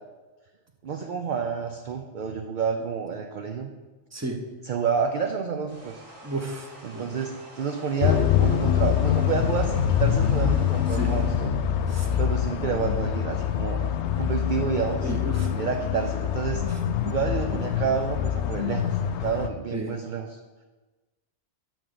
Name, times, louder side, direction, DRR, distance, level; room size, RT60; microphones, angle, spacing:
voice 1, 0.8-3.7 4.6-6.0 6.8-11.6 12.2-13.9 14.2-15.1 15.5-16.6 17.1-20.4, right 6 dB, 55° right, 4 dB, 0.6 m, -29 dB
sound 1, 5.7-11.5, right 1 dB, 85° right, 2.0 m, -47 dB
voice 2, 6.2-7.2 10.9-11.1 11.9-12.1 15.0-15.7 16.7-16.8 19.7-19.9, right 2 dB, 15° right, 2 dB, 0.9 m, -33 dB
sound 2, 8.0-19.5, left 9 dB, 75° left, 0.9 m, -25 dB
6.3 x 6.1 x 6.9 m, 1.2 s
omnidirectional pair, 1.2 m